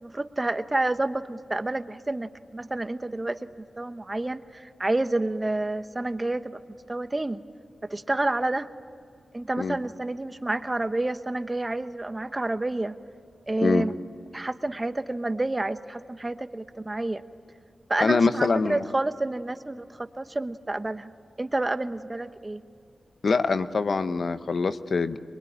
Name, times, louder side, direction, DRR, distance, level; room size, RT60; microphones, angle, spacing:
voice 1, 0.0-3.5 3.8-6.6 6.9-7.4 7.9-8.7 9.3-13.0 13.5-13.9 14.3-17.2 17.9-21.1 21.4-22.6, right 2 dB, 25° right, 10 dB, 1.0 m, -29 dB
voice 2, 18.0-18.8 23.2-25.2, left 4 dB, 70° left, 11 dB, 0.9 m, -24 dB
24.0 x 23.5 x 10.0 m, 2.3 s
wide cardioid pair, 75°, 0 cm